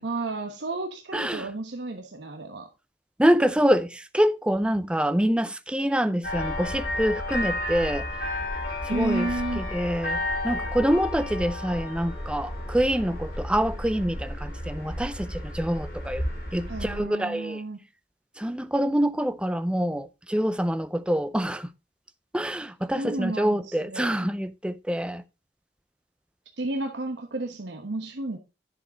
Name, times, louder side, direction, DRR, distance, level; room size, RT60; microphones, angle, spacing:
voice 1, 0.0-2.7 8.9-9.7 16.7-17.8 23.0-24.3 26.6-28.4, right 2 dB, 85° right, 1.1 m, -32 dB
voice 2, 1.1-1.5 3.2-8.0 8.8-9.3 9.6-10.2 10.4-16.2 16.5-17.6 18.4-21.7 22.3-25.2, equal, 5° right, 0.5 m, -26 dB
sound 1, 6.2-17.0, left 1 dB, 55° left, 4.9 m, -32 dB
10.0 x 6.7 x 3.9 m
head